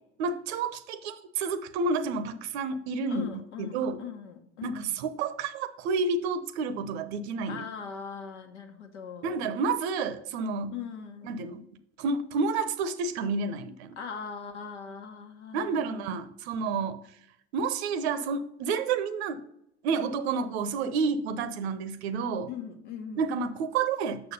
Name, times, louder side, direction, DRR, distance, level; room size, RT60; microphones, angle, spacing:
voice 1, 0.2-3.3 3.6-4.0 4.6-7.6 9.2-10.7 11.3-11.6 12.0-14.0 15.5-17.0 17.5-19.4 19.8-22.5 23.2-24.3, right 4 dB, 65° right, 13 dB, 0.8 m, -30 dB
voice 2, 3.1-5.1 7.5-9.3 10.7-11.4 14.0-16.0 22.5-23.3, left 6 dB, 75° left, 5 dB, 1.3 m, -40 dB
6.9 x 6.2 x 5.4 m, 0.76 s
figure-of-eight pair, 75°, 35 cm